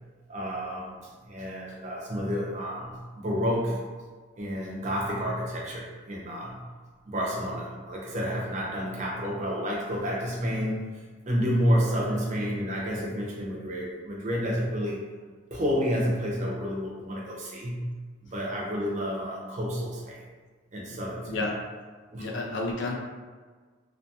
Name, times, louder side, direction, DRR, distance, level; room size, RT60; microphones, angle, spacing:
voice 1, 0.3-3.8 4.4-6.6 7.1-10.9 11.3-15.0 15.5-17.9 18.3-20.2 20.7-21.4 22.1-22.3, equal, 35° right, -3 dB, 0.5 m, -30 dB
voice 2, 21.3-21.6 22.2-23.0, left 2 dB, 70° left, 0 dB, 0.4 m, -30 dB
2.6 x 2.4 x 2.3 m, 1.4 s
head